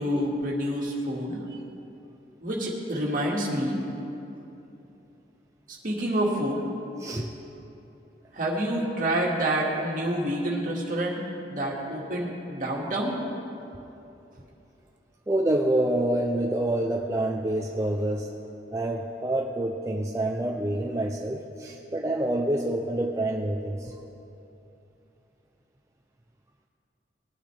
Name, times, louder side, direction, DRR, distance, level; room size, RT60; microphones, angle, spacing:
voice 1, 0.0-1.4 2.4-3.8 5.8-6.7 8.3-11.2 11.5-13.2, right 1 dB, 50° right, -2 dB, 2.0 m, -28 dB
voice 2, 15.3-18.3 18.7-23.9, right 1 dB, 15° right, 0 dB, 0.5 m, -27 dB
20.0 x 9.0 x 3.4 m, 2.9 s
head